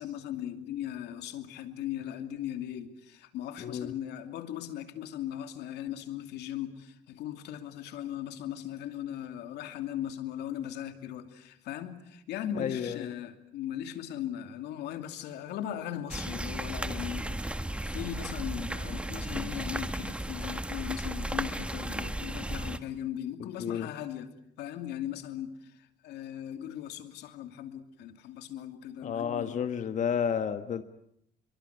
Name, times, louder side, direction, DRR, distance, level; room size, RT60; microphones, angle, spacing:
voice 1, 0.0-17.5 17.8-24.3 24.6-29.6, left 11 dB, 80° left, 2.7 m, -38 dB
voice 2, 3.6-3.9 12.5-13.1 23.4-23.9 29.0-30.8, left 7 dB, 45° left, 1.4 m, -31 dB
sound 1, 16.1-22.8, right 1 dB, 5° right, 1.6 m, -35 dB
28.5 x 23.0 x 8.2 m
cardioid pair, 110°, 17 cm